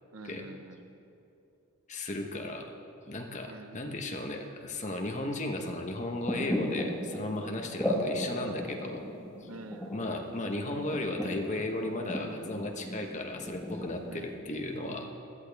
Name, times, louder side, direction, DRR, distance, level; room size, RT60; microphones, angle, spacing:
voice 1, 0.1-1.0 3.5-3.9 9.5-9.9 14.1-14.4, right 2 dB, 70° right, 7 dB, 0.9 m, -47 dB
voice 2, 1.9-2.7 3.0-9.0 9.4-9.5 9.9-15.1, left 2 dB, 30° left, 3 dB, 1.0 m, -35 dB
sound 1, 6.1-14.4, equal, 5° left, 1.5 m, -36 dB
16.5 x 12.5 x 3.5 m, 2.7 s
head